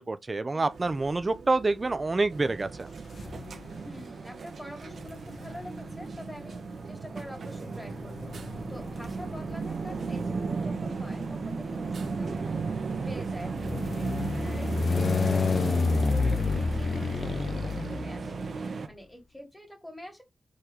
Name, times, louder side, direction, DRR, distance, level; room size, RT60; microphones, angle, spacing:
voice 1, 0.0-2.9, right 3 dB, 30° right, 0.8 m, -27 dB
sound 1, 0.7-18.3, right 5 dB, 85° right, 1.9 m, -50 dB
sound 2, 2.3-18.9, right 4 dB, 65° right, 1.1 m, -35 dB
sound 3, 3.2-3.9 4.9-18.6, left 4 dB, 55° left, 0.7 m, -31 dB
voice 2, 3.7-20.2, equal, 5° left, 2.5 m, -46 dB
4.9 x 4.2 x 5.2 m
wide cardioid pair, 105°, 0 cm